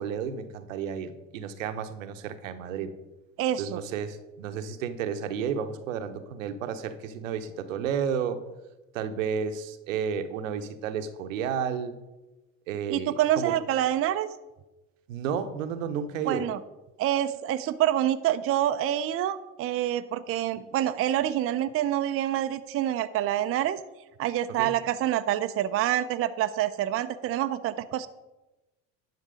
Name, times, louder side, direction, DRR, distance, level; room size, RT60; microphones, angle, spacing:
voice 1, 0.0-2.9 3.6-8.4 8.9-12.0 12.7-13.5 15.1-16.4 24.6-24.7, right 7 dB, 80° right, 10 dB, 0.9 m, -32 dB
voice 2, 3.4-3.8 12.9-14.3 16.3-16.6 17.0-23.8 24.2-28.1, right 12 dB, 35° right, 10 dB, 0.5 m, -27 dB
10.5 x 6.0 x 5.1 m, 1.0 s
hypercardioid pair, 70°, 39 cm